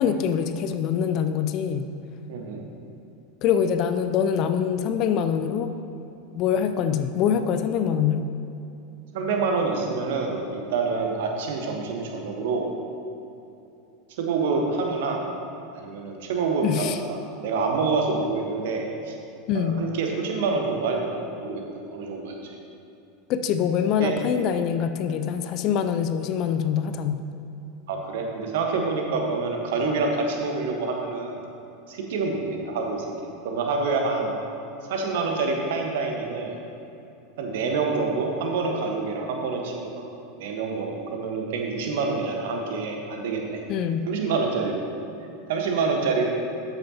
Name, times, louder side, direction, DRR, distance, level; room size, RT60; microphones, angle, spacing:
voice 1, 0.0-1.8 3.4-5.7 6.4-8.3 16.6-17.0 19.5-19.8 23.3-27.2 43.7-44.1, left 8 dB, 45° left, 9 dB, 0.5 m, -24 dB
voice 2, 2.3-2.7 9.1-12.7 14.2-15.2 15.7-19.1 19.5-22.4 24.0-24.2 27.9-31.4 31.9-34.3 34.9-36.6 37.4-40.1 40.4-43.6 44.1-44.8 45.5-46.2, right 4 dB, 60° right, 2 dB, 1.3 m, -27 dB
13.0 x 8.8 x 2.9 m, 2.8 s
figure-of-eight pair, 80°, 0 cm